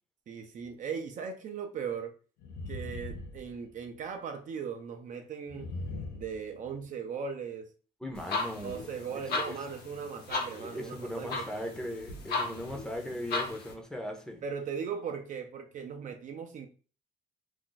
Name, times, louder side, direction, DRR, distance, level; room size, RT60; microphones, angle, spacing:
voice 1, 0.3-2.1 2.7-5.7 6.1-7.7 8.6-11.5 14.4-16.7, right 6 dB, 50° right, 0.5 m, -38 dB
sound 1, 0.6-0.7 2.4-4.0 5.5-6.8, left 2 dB, 85° left, 0.5 m, -40 dB
voice 2, 8.0-8.8 9.5-9.6 10.6-14.4, left 1 dB, 5° left, 0.6 m, -38 dB
sound 2, 8.1-13.7, left 3 dB, 70° left, 1.0 m, -36 dB
2.5 x 2.2 x 3.8 m
cardioid pair, 110°, 17 cm